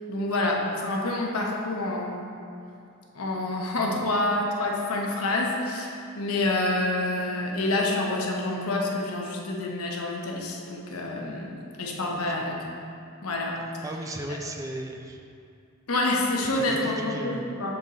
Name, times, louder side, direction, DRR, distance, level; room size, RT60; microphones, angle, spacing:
voice 1, 0.1-2.3 3.1-12.6 13.2-13.6 15.9-17.7, left 2 dB, 90° left, -1 dB, 0.9 m, -27 dB
voice 2, 12.1-12.5 13.8-15.2 16.4-17.4, right 1 dB, 15° right, 2 dB, 0.3 m, -36 dB
7.1 x 3.7 x 4.0 m, 2.5 s
head